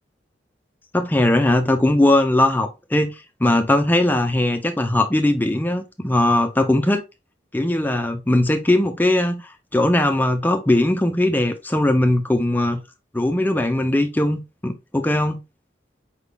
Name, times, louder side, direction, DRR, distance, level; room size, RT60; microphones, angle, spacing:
voice 1, 0.9-7.0 7.5-9.4 9.7-12.8 13.1-15.4, left 1 dB, 10° left, 0.5 m, -19 dB
5.0 x 3.5 x 2.2 m
head